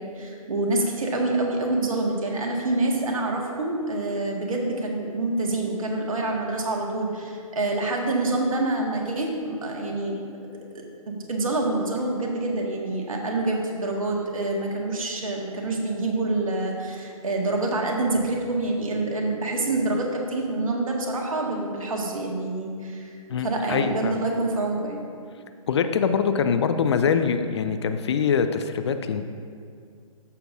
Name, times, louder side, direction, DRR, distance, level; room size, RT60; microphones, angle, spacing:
voice 1, 0.0-10.2 10.7-23.1 23.4-25.0, right 2 dB, 65° right, 0 dB, 1.8 m, -26 dB
voice 2, 23.3-24.2 25.7-29.3, left 6 dB, 50° left, 9 dB, 0.5 m, -24 dB
14.0 x 6.9 x 2.7 m, 2.2 s
figure-of-eight pair, 130°, 19 cm